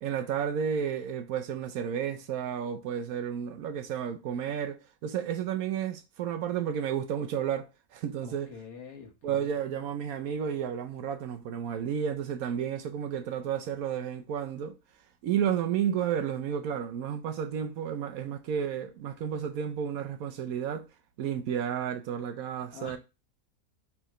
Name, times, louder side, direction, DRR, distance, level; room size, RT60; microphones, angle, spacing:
voice 1, 0.0-8.5 9.2-14.8 15.2-20.9 21.2-23.0, right 8 dB, 70° right, 1.0 m, -32 dB
voice 2, 8.2-9.6 22.7-23.0, left 6 dB, 65° left, 1.6 m, -46 dB
4.4 x 3.6 x 3.0 m
omnidirectional pair, 1.7 m